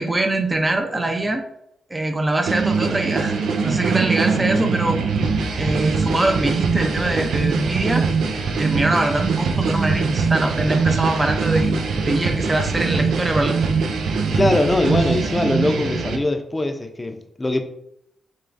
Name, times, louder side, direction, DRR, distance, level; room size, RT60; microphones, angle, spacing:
voice 1, 0.0-1.4 1.9-3.3 3.6-5.0 5.6-8.1 8.6-13.7, right 2 dB, 25° right, 4 dB, 0.6 m, -22 dB
sound 1, 2.5-16.2, right 4 dB, 80° right, 0.5 m, -22 dB
voice 2, 14.3-17.6, left 2 dB, 20° left, 6 dB, 0.6 m, -21 dB
6.3 x 2.3 x 2.6 m, 0.75 s
cardioid pair, 60°, 0 cm